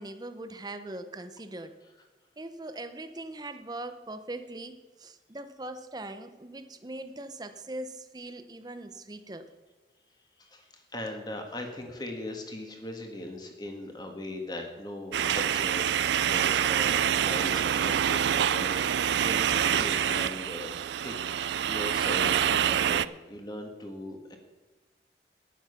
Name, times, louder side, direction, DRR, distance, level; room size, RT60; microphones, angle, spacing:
voice 1, 0.0-1.8 2.4-9.5 11.9-12.0, right 2 dB, 25° right, 10 dB, 0.8 m, -41 dB
voice 2, 10.4-20.8 21.0-24.4, left 1 dB, 25° left, 3 dB, 1.8 m, -39 dB
sound 1, 15.1-23.0, right 9 dB, 80° right, 0.4 m, -26 dB
10.5 x 10.5 x 5.9 m, 1.2 s
head